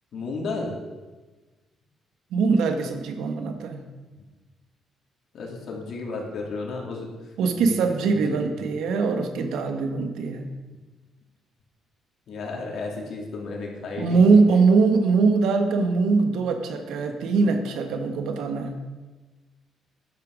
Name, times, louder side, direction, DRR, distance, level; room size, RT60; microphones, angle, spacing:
voice 1, 0.1-0.7 5.3-7.1 7.5-7.8 8.0-8.5 12.3-14.2, left 3 dB, 65° left, -1 dB, 3.4 m, -33 dB
voice 2, 2.3-3.8 7.4-10.5 14.0-18.8, right 4 dB, 85° right, 6 dB, 1.5 m, -22 dB
13.5 x 10.5 x 5.1 m, 1.3 s
cardioid pair, 90°, 0 cm